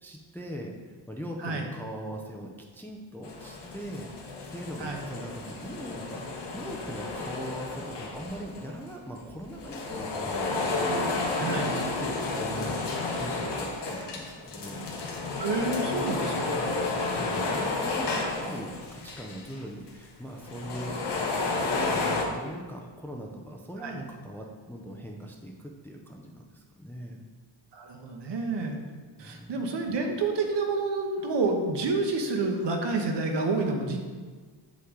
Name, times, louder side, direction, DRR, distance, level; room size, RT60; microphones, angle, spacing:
voice 1, 0.0-4.1 4.5-14.8 16.8-21.0 21.7-27.2 29.2-29.8, equal, 5° left, 1 dB, 0.5 m, -40 dB
sound 1, 3.2-8.9 9.4-19.6 19.9-20.0 20.4-22.2, left 3 dB, 60° left, 1.1 m, -31 dB
voice 2, 11.4-11.7 15.4-16.5 23.8-24.0 27.7-28.8 29.2-34.0, right 3 dB, 65° right, 2 dB, 1.1 m, -29 dB
7.9 x 5.6 x 3.7 m, 1.5 s
wide cardioid pair, 175°, 46 cm